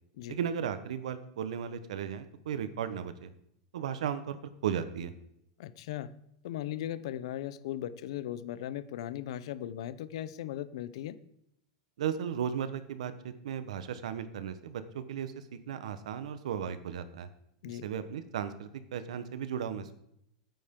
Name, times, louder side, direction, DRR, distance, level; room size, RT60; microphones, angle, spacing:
voice 1, 0.3-3.3 3.7-5.1 12.0-15.3 15.7-17.3 17.7-19.9, right 8 dB, 85° right, 11 dB, 1.1 m, -35 dB
voice 2, 5.6-6.1 6.4-11.2 17.6-17.8, left 12 dB, 55° left, 16 dB, 0.7 m, -38 dB
13.5 x 9.3 x 3.8 m, 0.76 s
supercardioid pair, 175°, 3 cm